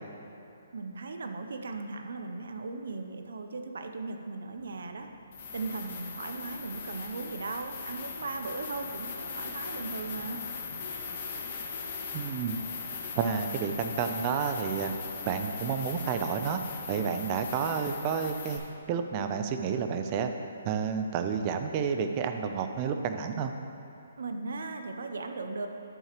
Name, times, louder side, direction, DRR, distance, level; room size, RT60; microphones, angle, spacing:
voice 1, 0.7-5.1 5.5-10.4 24.2-25.7, right 3 dB, 70° right, 6 dB, 0.6 m, -37 dB
sound 1, 4.6-4.7 5.3-18.6, left 5 dB, 50° left, 1.6 m, -39 dB
voice 2, 12.1-12.6 13.2-14.9 15.3-16.6 16.9-18.6 18.9-20.3 20.6-23.5, right 6 dB, 30° right, 6 dB, 0.5 m, -30 dB
11.0 x 6.4 x 3.0 m, 2.9 s
hypercardioid pair, 145°, 0 cm